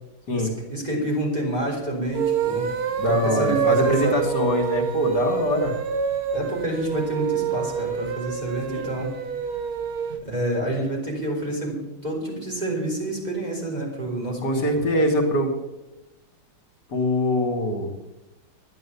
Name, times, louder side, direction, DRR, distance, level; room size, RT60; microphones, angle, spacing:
voice 1, 0.3-4.2 6.3-9.1 10.2-14.8, right 1 dB, 20° right, -2 dB, 4.0 m, -28 dB
sound 1, 2.1-10.2, right 7 dB, 55° right, 1.3 m, -27 dB
voice 2, 3.0-5.7 8.7-9.0 14.4-15.5 16.9-17.9, left 1 dB, 60° left, 2 dB, 2.7 m, -23 dB
11.5 x 10.5 x 7.1 m, 0.99 s
omnidirectional pair, 2.1 m